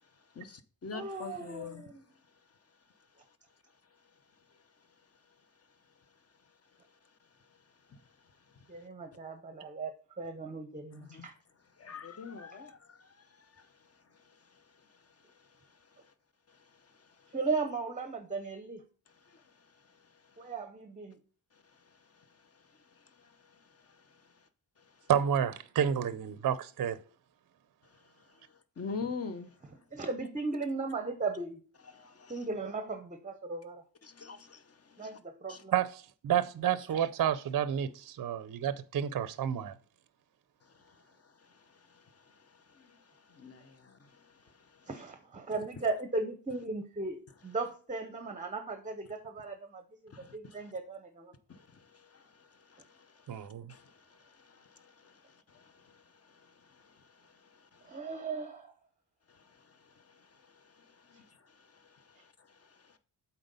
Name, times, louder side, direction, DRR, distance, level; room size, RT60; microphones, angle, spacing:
voice 1, 0.3-1.8 7.9-8.0 10.9-11.3 11.8-13.7 14.2-14.6 15.4-15.5 16.5-17.3 19.2-19.4 22.1-22.2 22.9-24.2 28.3-28.5 28.8-29.5 31.9-32.4 34.0-35.1 35.5-35.6 40.7-44.9 50.1-50.6 51.5-58.0 59.3-63.0, left 5 dB, 35° left, 0.8 m, -48 dB
voice 2, 0.9-2.0 8.7-11.3 12.5-12.6 17.3-18.8 20.4-21.2 29.9-31.6 32.3-33.8 35.0-35.7 44.9-51.3 57.8-58.7, right 3 dB, 20° right, 0.7 m, -37 dB
voice 3, 25.1-27.0 35.7-39.7 53.3-53.7, right 9 dB, 50° right, 0.5 m, -30 dB
7.9 x 4.2 x 5.3 m
wide cardioid pair, 115°, 42 cm